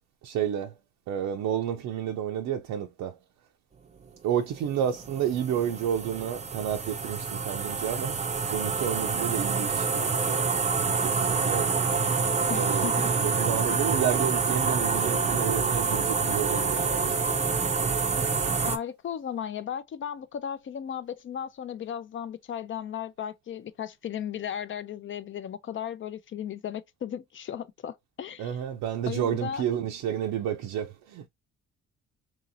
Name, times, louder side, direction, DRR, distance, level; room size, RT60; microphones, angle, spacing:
voice 1, 0.2-0.8 1.1-3.2 4.2-10.5 11.0-11.7 12.5-12.9 13.2-17.1 28.4-31.3, right 9 dB, 80° right, 0.5 m, -30 dB
sound 1, 4.4-18.8, right 5 dB, 25° right, 0.5 m, -27 dB
voice 2, 12.5-13.1 18.6-28.5 29.1-29.6, left 9 dB, 40° left, 0.5 m, -35 dB
3.0 x 2.7 x 2.6 m
cardioid pair, 90°, 30 cm